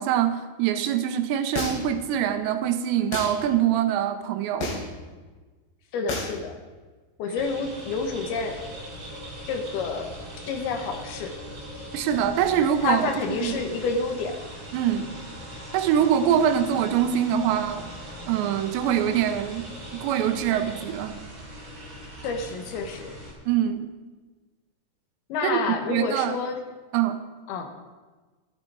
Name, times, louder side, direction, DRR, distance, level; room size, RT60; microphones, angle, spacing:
voice 1, 0.0-4.7 11.9-13.6 14.7-15.1 15.7-17.9 18.3-21.2 23.5-23.9 25.4-25.6 25.9-26.4 26.9-27.2, right 9 dB, 85° right, 8 dB, 3.1 m, -24 dB
sound 1, 1.6-2.0 3.1-3.3 4.6-5.0 6.1-6.4, left 2 dB, 90° left, 5.3 m, -30 dB
voice 2, 5.9-6.6 7.2-8.6 9.5-10.1 10.4-11.3 12.8-14.4 22.2-23.1 25.3-26.6 27.5-27.7, left 4 dB, 70° left, 5 dB, 2.8 m, -29 dB
sound 2, 7.4-23.3, equal, 40° right, 4.1 m, -40 dB
14.0 x 12.5 x 4.7 m, 1.3 s
omnidirectional pair, 5.0 m